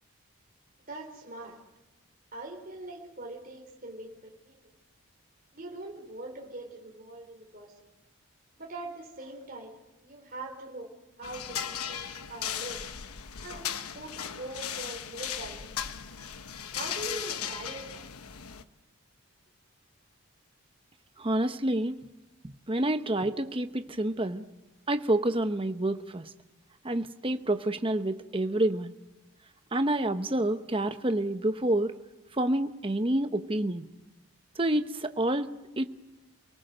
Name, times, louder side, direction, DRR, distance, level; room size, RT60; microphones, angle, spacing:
voice 1, 0.9-1.6 2.3-4.6 5.5-7.7 8.6-9.8 10.0-10.9 11.2-12.8 13.4-15.7 16.7-18.1, right 2 dB, 40° right, 0 dB, 3.8 m, -42 dB
sound 1, 11.2-18.6, left 9 dB, 85° left, 1.1 m, -37 dB
voice 2, 21.2-22.0 22.4-24.4 24.9-26.3 26.8-28.9 29.7-31.9 32.4-33.9 34.6-35.5 35.8-35.9, right 1 dB, 25° right, 9 dB, 0.9 m, -28 dB
28.0 x 19.0 x 7.9 m, 1.1 s
head